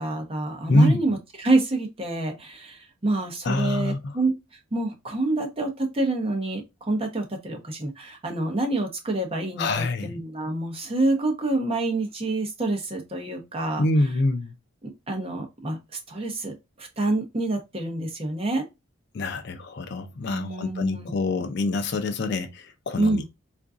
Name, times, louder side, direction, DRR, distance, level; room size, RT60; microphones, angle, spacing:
voice 1, 0.0-4.3 4.7-6.6 6.9-13.8 14.8-18.6 20.3-21.1 23.0-23.3, right 2 dB, 25° right, 0.7 m, -27 dB
voice 2, 0.7-1.0 3.4-4.1 9.6-10.2 13.8-14.5 19.1-23.3, left 2 dB, 50° left, 0.4 m, -25 dB
3.7 x 2.5 x 2.3 m
head